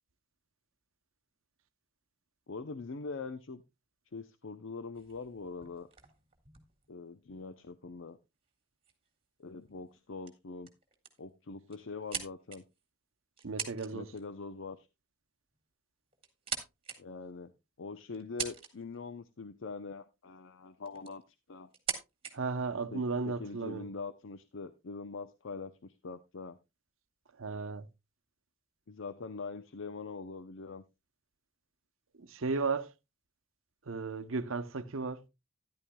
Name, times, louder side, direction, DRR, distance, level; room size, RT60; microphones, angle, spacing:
voice 1, 2.5-3.6 4.1-5.9 6.9-8.2 9.4-10.7 11.2-12.6 13.9-14.9 17.0-17.5 17.8-21.2 21.5-21.7 22.9-26.6 28.9-30.8, left 4 dB, 65° left, 0.6 m, -43 dB
sound 1, 5.0-7.5 8.4-8.5 8.8-9.1 9.7-10.0 10.3-10.4 10.7-11.2 11.7-12.8 13.4-13.9 14.2-14.4 15.5-15.6 16.1-17.0 17.5-17.6 18.1-19.0 20.3-20.4 20.9-21.2 21.7-22.3, right 7 dB, 25° right, 1.8 m, -41 dB
voice 2, 13.4-14.1 22.3-23.9 27.4-27.9 32.2-32.9 33.9-35.2, right 4 dB, 75° right, 0.8 m, -35 dB
13.0 x 10.5 x 2.2 m
head